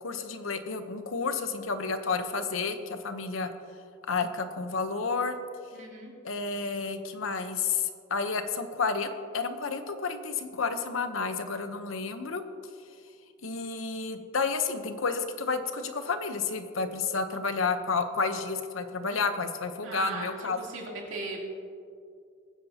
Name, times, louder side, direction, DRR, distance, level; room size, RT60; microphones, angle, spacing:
voice 1, 0.0-3.5 4.1-5.4 6.2-12.4 13.4-20.6, left 4 dB, 90° left, 8 dB, 0.9 m, -31 dB
voice 2, 5.7-6.1 19.8-20.3 20.6-21.4, right 2 dB, 70° right, -3 dB, 3.1 m, -38 dB
21.5 x 9.9 x 2.9 m, 2.3 s
head